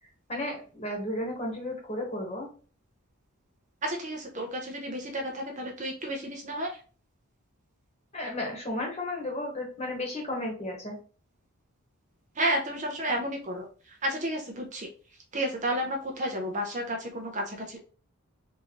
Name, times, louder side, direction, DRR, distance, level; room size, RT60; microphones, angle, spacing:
voice 1, 0.3-2.5 8.1-11.0, left 1 dB, 30° left, -1 dB, 1.1 m, -33 dB
voice 2, 3.8-6.8 12.3-14.9 15.3-17.8, right 1 dB, 35° right, 1 dB, 0.6 m, -32 dB
3.7 x 2.7 x 2.9 m, 0.38 s
head